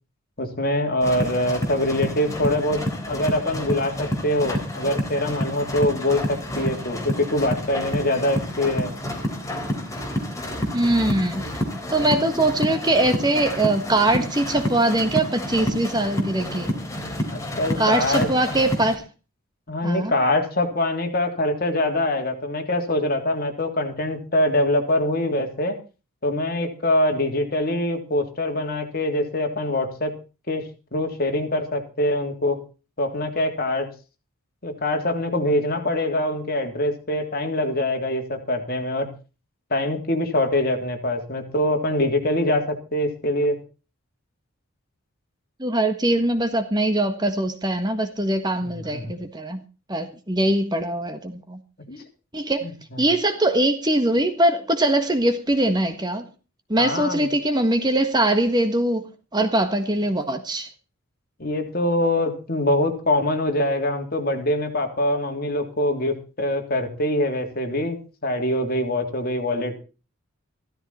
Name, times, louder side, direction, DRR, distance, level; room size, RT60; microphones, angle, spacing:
voice 1, 0.4-8.9 17.3-18.3 19.7-25.8 26.2-30.1 30.5-32.6 33.0-33.9 34.6-39.1 39.7-43.6 48.9-49.1 51.9-52.0 52.6-53.0 56.8-57.3 61.4-69.8, left 1 dB, 45° left, 3.3 m, -24 dB
sound 1, 1.0-18.9, equal, 15° left, 3.7 m, -29 dB
voice 2, 10.7-11.4 11.9-16.7 17.8-19.0 19.8-20.1 45.6-49.6 49.9-51.6 52.3-52.7 53.0-56.3 56.7-59.1 59.3-60.7, right 1 dB, 20° right, 1.5 m, -22 dB
15.5 x 14.0 x 4.3 m
head